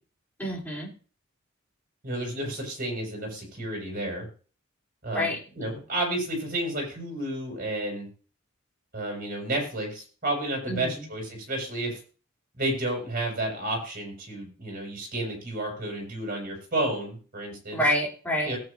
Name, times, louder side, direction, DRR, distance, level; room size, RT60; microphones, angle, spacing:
voice 1, 0.4-0.9 5.1-5.4 10.7-11.1 17.7-18.6, equal, 10° left, -3 dB, 3.3 m, -27 dB
voice 2, 2.0-4.3 5.0-8.1 8.9-12.0 12.5-17.8 18.4-18.6, right 1 dB, 45° right, 0 dB, 6.2 m, -31 dB
19.5 x 8.7 x 2.7 m, 0.39 s
head